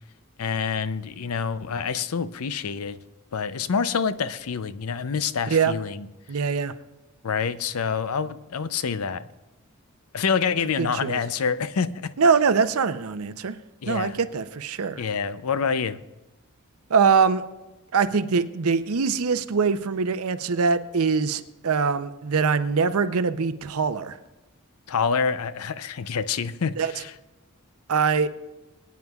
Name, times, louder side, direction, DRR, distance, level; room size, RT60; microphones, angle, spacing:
voice 1, 0.4-3.0 3.3-6.1 7.2-9.2 10.1-12.1 13.8-14.2 15.0-16.0 24.9-27.1, left 6 dB, 80° left, 14 dB, 0.5 m, -27 dB
voice 2, 6.3-6.7 10.8-11.2 12.2-13.6 13.9-15.0 16.9-17.4 17.9-24.2 26.8-26.9 27.9-28.3, right 5 dB, 75° right, 12 dB, 0.6 m, -23 dB
23.0 x 9.3 x 2.4 m, 1.0 s
head